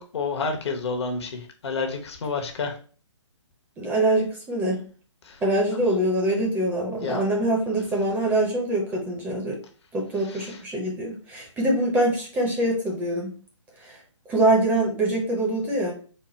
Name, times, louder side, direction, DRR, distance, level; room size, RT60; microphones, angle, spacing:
voice 1, 0.0-2.8 5.2-5.4 7.0-7.2 10.2-10.6, left 4 dB, 60° left, 4 dB, 0.9 m, -30 dB
voice 2, 3.8-4.8 5.4-9.6 9.9-13.3 13.8-13.9 14.3-15.9, right 1 dB, 10° right, -1 dB, 0.7 m, -24 dB
4.1 x 2.2 x 3.1 m, 0.38 s
figure-of-eight pair, 135°, 16 cm